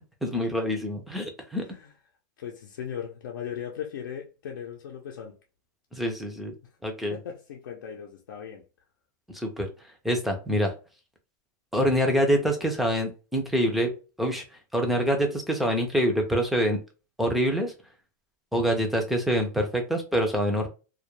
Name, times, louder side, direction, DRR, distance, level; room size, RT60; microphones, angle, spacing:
voice 1, 0.2-1.6 5.9-6.5 6.8-7.2 9.3-9.7 10.0-10.7 11.7-13.9 14.2-14.4 14.7-16.8 17.2-17.7 18.5-20.7, equal, ahead, 0.4 m, -25 dB
voice 2, 1.6-1.9 2.4-5.4 7.1-8.6, left 8 dB, 85° left, 0.5 m, -38 dB
2.2 x 2.1 x 2.9 m
supercardioid pair, 160°, 10 cm